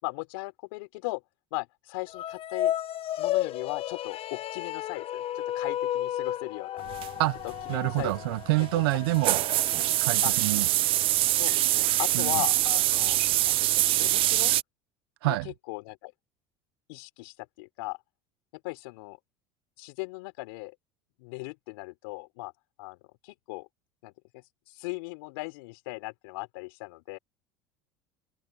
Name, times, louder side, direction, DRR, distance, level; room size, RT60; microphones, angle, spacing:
voice 1, 0.0-1.2 1.5-2.7 3.2-6.8 7.4-8.7 10.2-10.3 11.3-14.6 15.2-16.1 16.9-18.0 18.6-19.2 19.8-20.8 21.2-22.5 22.8-23.0 23.2-23.7 24.0-27.2, left 26 dB, 75° left, 3.8 m, -38 dB
sound 1, 2.1-10.6, left 12 dB, 50° left, 1.3 m, -33 dB
sound 2, 6.9-14.6, right 16 dB, 45° right, 0.4 m, -25 dB
voice 2, 7.7-9.4 10.0-10.7 12.1-12.4 15.2-15.5, right 22 dB, 75° right, 1.1 m, -27 dB
open air
hypercardioid pair, 80°, 13 cm